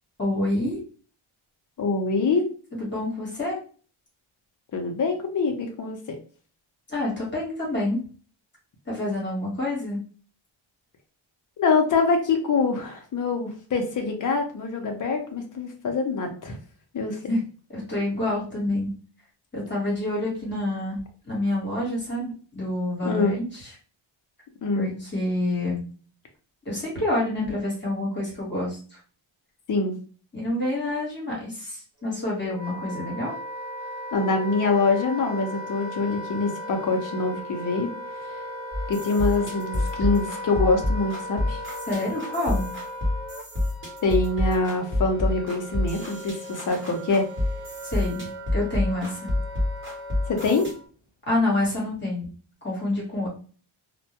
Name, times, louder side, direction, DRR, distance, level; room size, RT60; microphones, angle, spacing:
voice 1, 0.2-0.8 2.8-3.6 6.9-8.0 8.9-10.0 17.3-17.4 17.7-18.9 19.5-21.0 21.3-23.7 24.7-25.8 26.6-29.0 30.3-33.3 41.9-42.7 47.8-48.3 48.5-49.2 51.3-52.3 52.6-53.3, left 1 dB, 20° left, -4 dB, 1.1 m, -27 dB
voice 2, 1.8-2.5 4.7-6.2 11.6-16.6 16.9-17.3 23.0-23.3 24.6-24.9 29.7-29.9 34.1-37.9 38.9-41.6 44.0-47.3 50.3-50.7, left 3 dB, 40° left, 3 dB, 0.5 m, -24 dB
Wind instrument woodwind instrument, 32.0-50.9, equal, 5° right, 0.5 m, -37 dB
sound 1, 38.7-50.7, left 1 dB, 25° right, 1.0 m, -28 dB
2.1 x 2.1 x 2.8 m, 0.40 s
wide cardioid pair, 165°, 49 cm